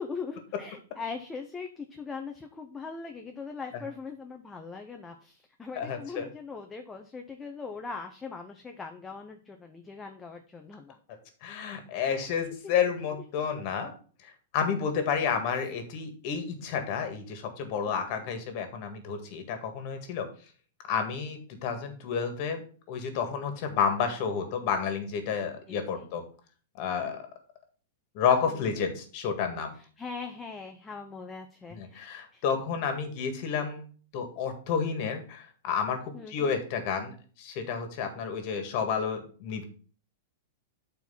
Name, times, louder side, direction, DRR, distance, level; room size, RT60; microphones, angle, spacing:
voice 1, 0.0-11.0 12.0-12.3 12.6-12.7 17.9-18.2 25.7-26.1 28.5-28.8 30.0-32.1 32.3-32.4 36.1-36.5, left 4 dB, 10° left, 4 dB, 0.6 m, -41 dB
voice 2, 5.8-6.3 11.4-13.9 14.2-20.3 20.9-26.2 26.8-27.2 28.1-29.7 31.7-33.8 34.1-39.6, left 6 dB, 40° left, 6 dB, 1.7 m, -30 dB
8.3 x 4.5 x 5.7 m, 0.41 s
supercardioid pair, 165°, 0 cm